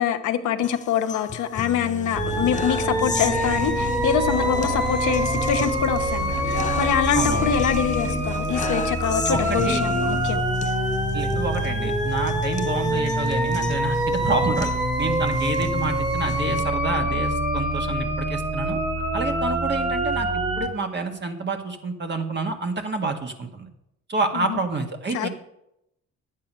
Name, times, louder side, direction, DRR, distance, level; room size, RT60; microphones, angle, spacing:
voice 1, 0.0-10.5 24.3-24.6 25.1-25.3, left 8 dB, 75° left, 6 dB, 1.0 m, -25 dB
sound 1, 0.6-16.6, left 5 dB, 25° left, 0.5 m, -31 dB
sound 2, 2.1-20.7, right 1 dB, 20° right, 2.2 m, -25 dB
sound 3, 3.4-8.8, right 1 dB, 75° right, 2.0 m, -39 dB
voice 2, 7.1-7.5 9.3-9.8 11.1-18.8 19.1-23.7 24.1-25.3, right 3 dB, 35° right, 4 dB, 1.8 m, -28 dB
10.5 x 8.4 x 5.6 m, 0.82 s
cardioid pair, 90°, 30 cm